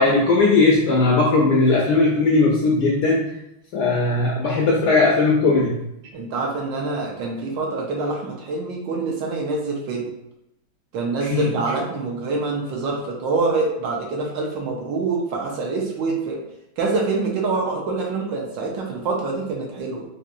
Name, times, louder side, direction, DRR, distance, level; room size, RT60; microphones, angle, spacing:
voice 1, 0.0-3.3 3.7-5.7 11.2-11.4, left 3 dB, 75° left, -2 dB, 0.9 m, -18 dB
voice 2, 6.1-10.1 10.9-16.4 16.8-20.0, right 3 dB, 70° right, -1 dB, 1.3 m, -25 dB
4.2 x 2.6 x 2.5 m, 0.84 s
omnidirectional pair, 2.2 m